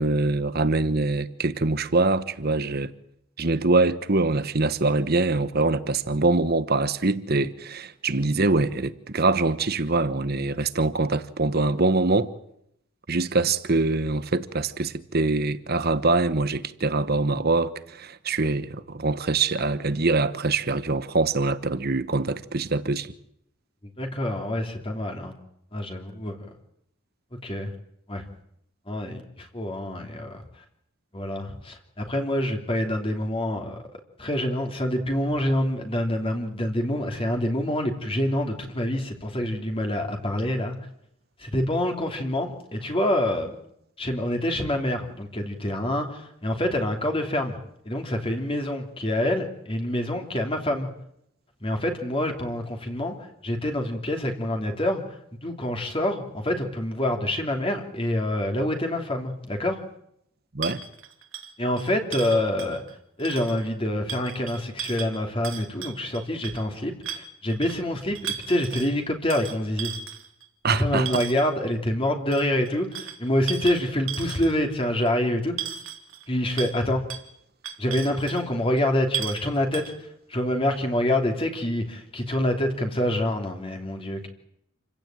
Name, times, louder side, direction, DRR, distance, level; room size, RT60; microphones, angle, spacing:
voice 1, 0.0-2.9 3.4-12.3 13.1-23.1 60.5-60.8 70.6-71.1, right 3 dB, 50° right, 1.2 m, -24 dB
voice 2, 24.0-25.3 25.7-26.4 27.4-27.7 28.1-28.2 28.9-30.4 31.1-33.8 34.2-40.7 41.4-43.5 44.0-47.6 47.8-50.9 51.6-53.1 53.4-55.0 55.4-59.8 61.6-62.8 63.2-69.9 70.7-75.7 76.3-77.0 77.8-79.8 80.3-84.3, left 1 dB, 25° left, 2.9 m, -26 dB
sound 1, 60.6-62.9 63.2-63.6 64.1-66.6 67.0-67.8 68.2-68.9 69.3-71.5 72.3-74.7 75.1-75.2 75.6-76.3 76.6-76.8 77.1-77.3 77.6-78.4 78.8-78.9 79.1-79.5 79.7-80.0, right 9 dB, 75° right, 2.8 m, -35 dB
28.5 x 16.0 x 9.0 m
head